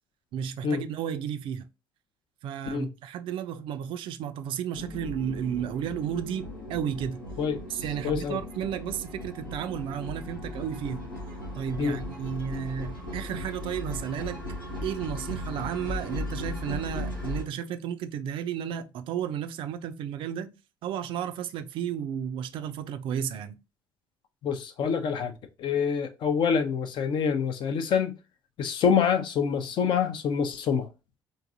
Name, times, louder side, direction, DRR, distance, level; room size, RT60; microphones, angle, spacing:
voice 1, 0.3-1.7 2.4-7.2 7.7-11.1 11.6-14.4 14.8-20.5 20.8-23.6, right 9 dB, 50° right, 0.4 m, -33 dB
sound 1, 4.7-17.4, left 1 dB, 90° left, 0.8 m, -37 dB
voice 2, 8.0-8.4 11.8-12.0 24.4-25.3 25.6-28.2 28.6-30.9, left 6 dB, 50° left, 0.5 m, -26 dB
3.8 x 2.6 x 2.6 m
figure-of-eight pair, 50°, 11 cm